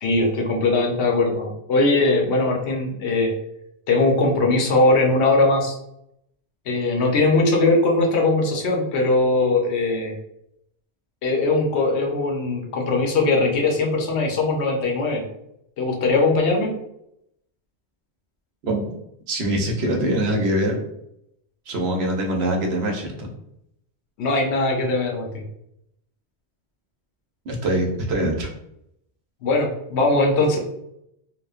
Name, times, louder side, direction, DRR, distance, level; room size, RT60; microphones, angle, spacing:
voice 1, 0.0-3.3 3.9-5.8 6.7-10.1 11.2-15.2 15.8-16.7 24.2-25.4 29.4-30.6, left 2 dB, 75° left, 1 dB, 0.9 m, -20 dB
voice 2, 19.3-20.8 21.7-23.3 27.5-28.5, right 1 dB, 70° right, 1 dB, 0.9 m, -23 dB
3.0 x 2.1 x 2.3 m, 0.79 s
omnidirectional pair, 1.1 m